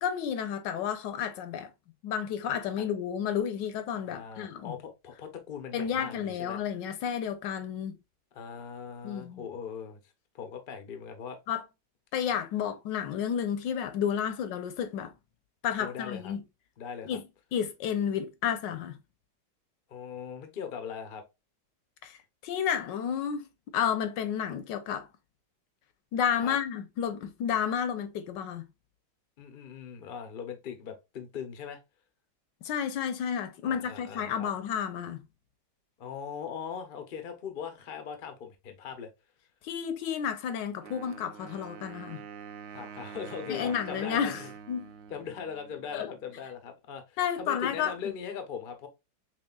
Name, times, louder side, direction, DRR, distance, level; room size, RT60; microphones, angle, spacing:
voice 1, 0.0-1.7 2.0-4.7 5.7-8.0 9.0-9.4 11.5-11.6 12.1-15.1 15.6-16.4 17.0-17.2 17.5-19.0 22.0-25.1 26.1-28.7 32.6-35.2 39.6-42.2 43.5-44.4 44.7-44.9 45.9-46.1 47.2-47.9, left 8 dB, 75° left, 1.3 m, -31 dB
voice 2, 4.1-6.6 8.3-10.0 10.3-11.4 15.8-16.3 16.8-17.2 19.9-21.2 26.4-26.6 29.4-31.8 33.6-34.5 36.0-39.1 42.7-44.5 45.1-48.9, left 7 dB, 60° left, 0.5 m, -40 dB
Wind instrument woodwind instrument, 40.8-46.5, right 7 dB, 70° right, 1.1 m, -46 dB
6.1 x 2.4 x 2.2 m
omnidirectional pair, 2.0 m